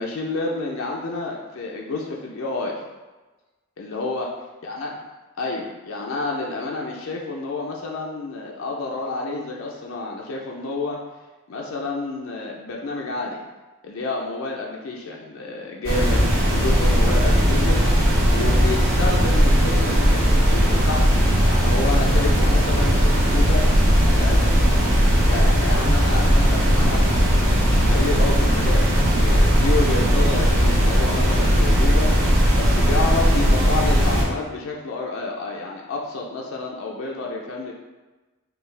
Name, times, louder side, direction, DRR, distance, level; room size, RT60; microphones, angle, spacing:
voice 1, 0.0-2.8 3.8-4.3 4.6-4.9 5.4-11.0 11.5-13.4 13.8-21.1 21.4-23.7 24.1-24.4 25.3-32.1 32.5-37.7, left 3 dB, 75° left, -1 dB, 0.5 m, -29 dB
sound 1, 15.8-34.2, equal, 65° right, 1.0 m, -18 dB
4.5 x 2.3 x 3.3 m, 1.2 s
head